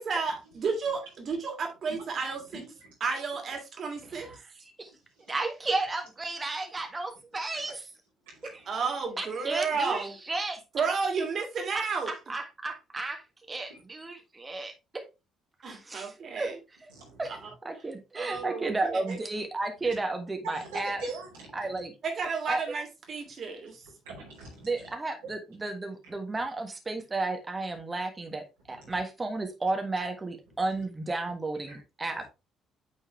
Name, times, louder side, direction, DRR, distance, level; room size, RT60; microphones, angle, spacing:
voice 1, 0.0-2.6 3.0-4.3 8.7-10.1 10.7-12.1 15.6-16.6 17.2-17.4 18.1-19.2 22.0-23.8, right 5 dB, 45° right, 2 dB, 2.7 m, -32 dB
voice 2, 2.5-2.9 4.0-4.3 5.3-5.4 7.5-7.7 8.3-8.6 13.7-13.8 16.9-17.2 18.3-18.4 19.8-19.9 20.4-21.8 24.0-24.9 28.7-29.0 30.7-30.8 31.7-31.8 32.1-32.3, right 2 dB, 75° right, -6 dB, 2.7 m, -43 dB
voice 3, 5.3-7.8 9.2-10.6 11.7-13.2 13.5-15.0 15.7-16.5 16.8-16.9 17.2-17.4 17.6-21.0 21.5-21.9 22.5-22.6 24.6-32.3, right 3 dB, 25° right, 5 dB, 1.5 m, -33 dB
9.0 x 4.5 x 3.2 m, 0.25 s
figure-of-eight pair, 50°, 0 cm